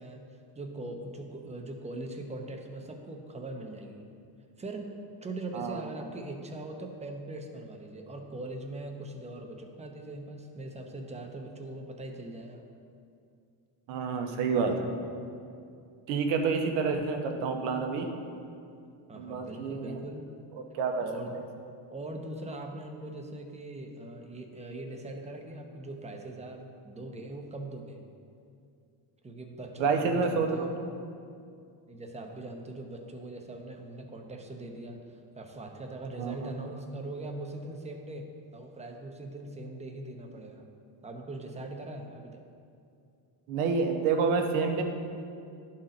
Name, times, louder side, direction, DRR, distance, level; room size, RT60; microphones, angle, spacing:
voice 1, 0.0-4.1 4.6-4.9 5.2-12.6 19.1-20.2 21.0-21.4 21.9-28.0 29.2-30.8 31.9-40.7 41.0-42.4, right 2 dB, 15° right, 2 dB, 0.7 m, -41 dB
voice 2, 5.5-5.8 13.9-14.9 16.1-18.1 19.1-20.0 20.7-21.0 21.3-21.4 29.8-30.9 36.2-36.5 43.5-44.8, right 5 dB, 85° right, 4 dB, 1.0 m, -28 dB
11.0 x 4.3 x 3.9 m, 2.4 s
cardioid pair, 105°, 48 cm